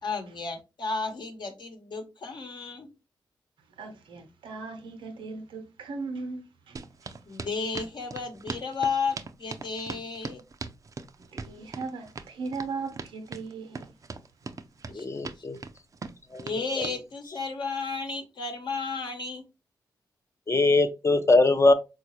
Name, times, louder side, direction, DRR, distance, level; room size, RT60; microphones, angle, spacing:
voice 1, 0.0-2.9 7.2-10.4 14.9-15.0 16.4-19.4, left 4 dB, 60° left, 1.0 m, -33 dB
voice 2, 3.8-7.1 11.2-13.9, right 4 dB, 80° right, 0.7 m, -38 dB
sound 1, 6.8-17.0, right 4 dB, 40° right, 0.4 m, -40 dB
voice 3, 14.9-15.6 16.3-16.9 20.5-21.7, left 2 dB, 35° left, 0.6 m, -22 dB
3.8 x 2.3 x 2.9 m
supercardioid pair, 50°, 9 cm